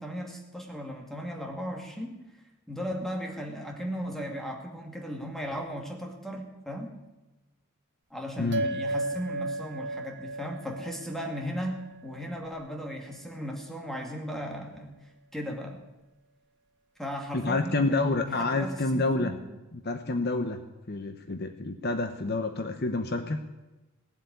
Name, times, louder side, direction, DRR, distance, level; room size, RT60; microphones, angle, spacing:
voice 1, 0.0-2.2 2.7-7.0 8.1-15.8 17.0-19.4, equal, ahead, 1 dB, 2.2 m, -36 dB
voice 2, 8.4-8.7 17.3-19.3 19.8-20.6 20.9-23.4, left 2 dB, 45° left, 8 dB, 0.9 m, -28 dB
sound 1, 8.5-13.2, right 2 dB, 55° right, 1.1 m, -35 dB
17.5 x 7.9 x 9.6 m, 1.1 s
head